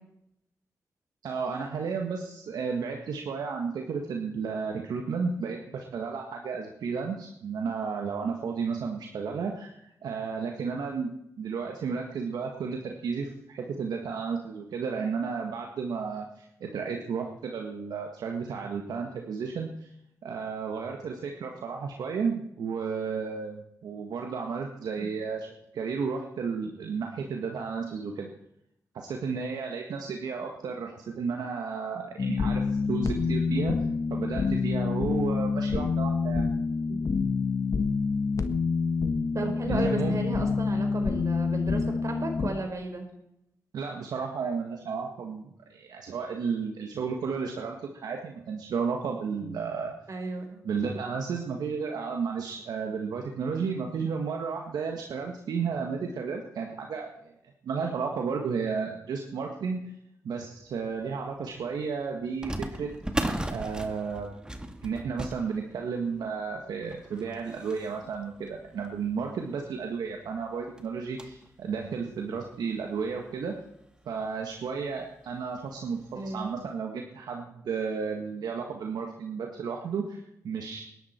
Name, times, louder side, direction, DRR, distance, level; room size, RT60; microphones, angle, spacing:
voice 1, 1.2-9.7 10.0-19.9 20.2-28.3 28.9-32.6 32.9-33.8 34.1-36.5 39.7-40.2 43.7-49.9 50.6-57.3 57.6-59.8 60.2-62.9 63.5-64.4 64.8-73.6 74.0-80.8, right 5 dB, 85° right, 2 dB, 1.6 m, -33 dB
sound 1, 32.2-42.5, left 5 dB, 55° left, 1.5 m, -27 dB
voice 2, 39.3-43.1 50.1-50.6 76.1-76.6, right 3 dB, 55° right, 4 dB, 4.7 m, -34 dB
sound 2, 61.0-61.1 62.4-69.4 69.9-70.0 70.3-70.4 70.8-71.5 72.0-72.1 73.0-73.1 73.4-73.6 74.9-75.2 75.6-75.7 76.3-76.5, right 1 dB, 15° right, 2.0 m, -37 dB
20.5 x 11.0 x 4.5 m, 0.79 s
cardioid pair, 50°, 7 cm